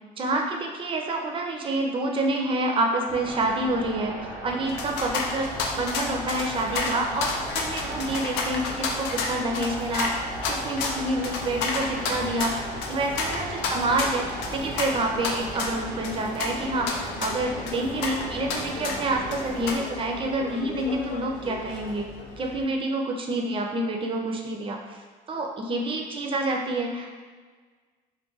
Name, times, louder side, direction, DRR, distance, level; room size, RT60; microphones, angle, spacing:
voice 1, 0.2-4.2 4.4-5.5 5.7-10.1 10.5-12.5 12.9-14.3 14.5-22.1 22.4-25.0 25.3-27.1, right 2 dB, 30° right, 1 dB, 0.4 m, -28 dB
sound 1, 3.1-19.8, right 1 dB, 90° right, 0.7 m, -37 dB
sound 2, 4.7-22.6, left 3 dB, 90° left, 0.4 m, -32 dB
2.4 x 2.2 x 3.8 m, 1.5 s
cardioid pair, 110°, 17 cm